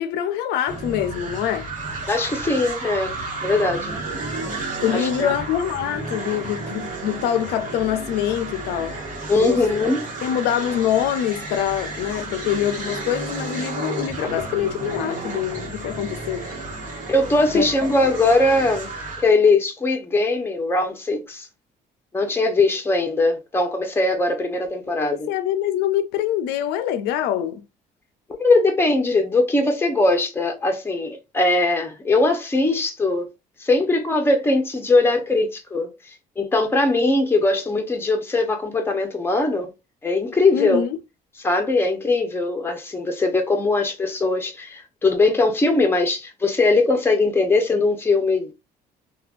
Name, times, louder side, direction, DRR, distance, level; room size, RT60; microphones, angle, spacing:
voice 1, 0.0-1.7 4.8-9.0 9.4-9.6 10.2-16.5 17.5-17.7 25.3-27.6 40.5-41.0, left 10 dB, 85° left, 0.4 m, -24 dB
sound 1, 0.7-19.3, right 3 dB, 50° right, 1.2 m, -32 dB
voice 2, 2.1-4.0 4.9-5.4 9.3-10.0 17.1-18.9 19.2-21.5 22.1-25.3 28.3-33.3 33.6-35.9 36.4-39.7 40.0-40.8 41.4-48.5, left 2 dB, 15° left, 0.8 m, -20 dB
3.1 x 2.3 x 2.4 m
cardioid pair, 110°, 17 cm